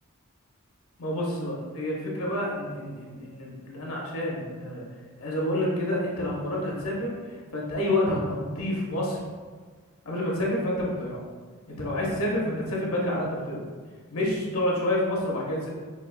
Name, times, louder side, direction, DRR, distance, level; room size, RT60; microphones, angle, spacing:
voice 1, 1.0-4.8 5.2-9.2 10.0-11.2 11.7-13.6 14.1-15.7, left 1 dB, 80° left, -4 dB, 1.0 m, -28 dB
5.3 x 2.8 x 2.2 m, 1.5 s
head